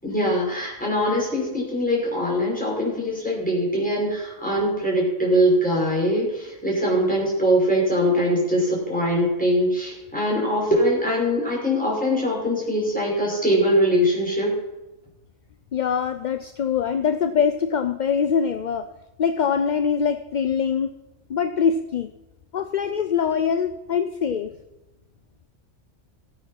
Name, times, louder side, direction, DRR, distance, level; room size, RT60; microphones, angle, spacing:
voice 1, 0.0-14.5, equal, 5° left, -4 dB, 5.8 m, -22 dB
voice 2, 15.7-18.9 19.2-20.9 21.3-22.1 22.5-24.5, left 7 dB, 50° left, 9 dB, 0.6 m, -23 dB
16.0 x 9.2 x 5.8 m, 0.99 s
omnidirectional pair, 1.3 m